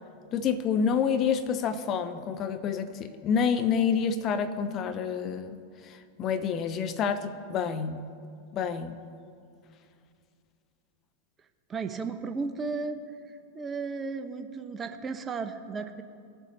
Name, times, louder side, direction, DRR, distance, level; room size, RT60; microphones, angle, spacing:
voice 1, 0.3-5.6 5.8-8.0 8.5-9.0, left 6 dB, 35° left, 10 dB, 0.6 m, -28 dB
voice 2, 11.7-13.0 13.5-16.0, right 4 dB, 20° right, 9 dB, 0.7 m, -34 dB
19.5 x 7.6 x 3.2 m, 2.3 s
figure-of-eight pair, 90°, 0 cm